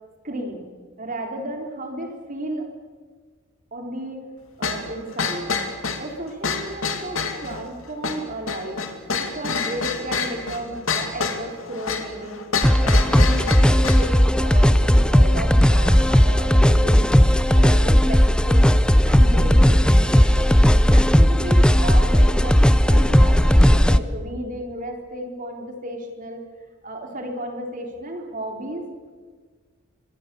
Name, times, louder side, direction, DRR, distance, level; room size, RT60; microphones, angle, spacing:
voice 1, 0.2-0.7 1.0-2.7 3.7-4.2 4.6-5.5 6.0-8.8 9.2-12.4 12.8-17.1 17.5-18.7 19.0-26.4 26.8-28.9, right 1 dB, 40° right, 2 dB, 4.0 m, -33 dB
sound 1, 4.6-14.1, left 4 dB, 85° left, 2.6 m, -28 dB
sound 2, 12.6-24.0, equal, 5° left, 0.6 m, -15 dB
24.5 x 22.5 x 7.0 m, 1.5 s
head